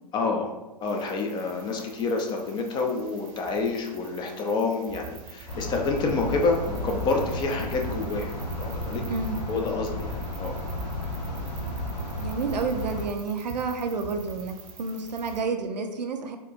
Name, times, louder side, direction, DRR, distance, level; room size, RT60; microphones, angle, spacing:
voice 1, 0.1-0.5 0.8-9.0 9.5-10.6, left 3 dB, 20° left, 2 dB, 0.4 m, -28 dB
sound 1, 0.8-15.4, right 6 dB, 35° right, 0.7 m, -45 dB
sound 2, 5.5-13.1, left 1 dB, 90° left, 0.7 m, -33 dB
voice 2, 9.1-9.4 12.2-16.4, right 4 dB, 90° right, 5 dB, 0.5 m, -30 dB
4.3 x 2.0 x 2.6 m, 1.0 s
hypercardioid pair, 110°, 21 cm